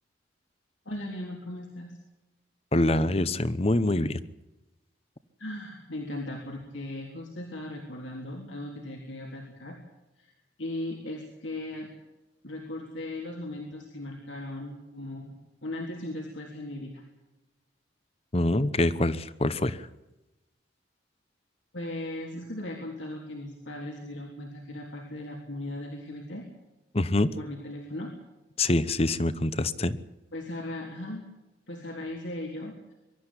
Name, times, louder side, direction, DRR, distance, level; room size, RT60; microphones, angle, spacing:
voice 1, 0.9-2.0 5.4-9.8 10.2-11.9 12.4-17.0 21.7-26.5 27.4-28.1 30.3-31.2 31.7-32.9, left 1 dB, 80° left, 0 dB, 3.5 m, -38 dB
voice 2, 2.7-4.2 18.3-19.8 26.9-27.3 28.6-30.0, left 2 dB, 30° left, 15 dB, 0.9 m, -25 dB
23.5 x 12.5 x 9.9 m, 1.0 s
head